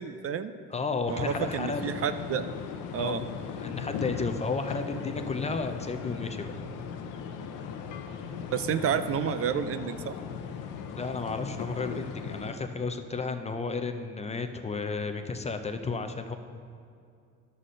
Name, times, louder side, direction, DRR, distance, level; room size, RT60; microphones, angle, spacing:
voice 1, 0.0-0.5 1.1-2.5 2.9-3.2 8.5-10.2, right 8 dB, 45° right, 11 dB, 0.4 m, -30 dB
voice 2, 0.7-1.9 3.0-3.3 3.6-6.5 11.0-16.4, left 4 dB, 20° left, 7 dB, 0.5 m, -33 dB
sound 1, 1.1-12.5, left 6 dB, 75° left, 0.8 m, -38 dB
11.0 x 4.2 x 6.3 m, 2.4 s
cardioid pair, 100°, 32 cm